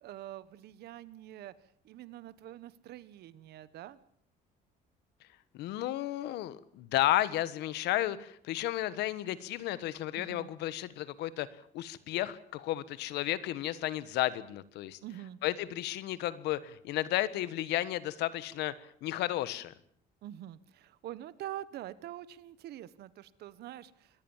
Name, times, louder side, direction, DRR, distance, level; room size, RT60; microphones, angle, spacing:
voice 1, 0.0-1.5 1.8-4.0 10.1-10.5 15.0-15.4 20.2-24.2, right 13 dB, 70° right, 16 dB, 1.3 m, -45 dB
voice 2, 5.5-11.5 11.7-15.0 15.4-18.7 19.0-19.7, left 14 dB, 85° left, 15 dB, 1.4 m, -33 dB
24.5 x 18.0 x 7.3 m, 0.62 s
cardioid pair, 110°, 17 cm